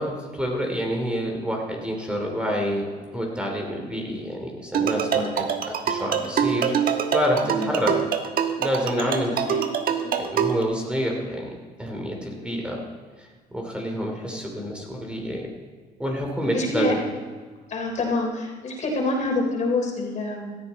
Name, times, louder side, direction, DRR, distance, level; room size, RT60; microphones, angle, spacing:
voice 1, 0.0-2.9 3.1-5.5 5.8-7.9 8.6-9.4 10.1-11.5 11.8-12.8 13.5-15.5 16.0-17.0, equal, 5° right, 0 dB, 2.9 m, -28 dB
sound 1, 4.7-10.6, right 8 dB, 60° right, 1.4 m, -25 dB
voice 2, 4.9-5.3 7.4-7.7 9.0-9.6 10.0-10.2 12.4-12.6 14.2-14.4 16.4-16.9 17.7-20.6, left 2 dB, 45° left, 1 dB, 3.8 m, -27 dB
17.0 x 14.0 x 4.2 m, 1.5 s
cardioid pair, 110°, 17 cm